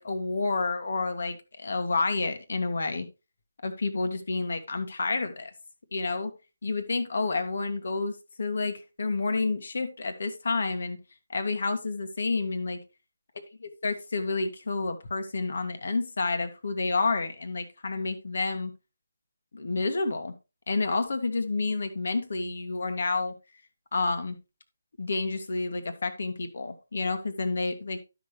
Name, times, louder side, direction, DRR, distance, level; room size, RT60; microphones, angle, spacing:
voice 1, 0.0-3.1 3.6-5.5 5.9-6.3 6.6-11.0 11.3-12.8 13.8-18.7 19.5-20.3 20.7-23.3 23.9-24.4 25.0-28.0, left 3 dB, 60° left, 8 dB, 1.8 m, -29 dB
12.0 x 6.3 x 3.3 m, 0.27 s
figure-of-eight pair, 155°, 0 cm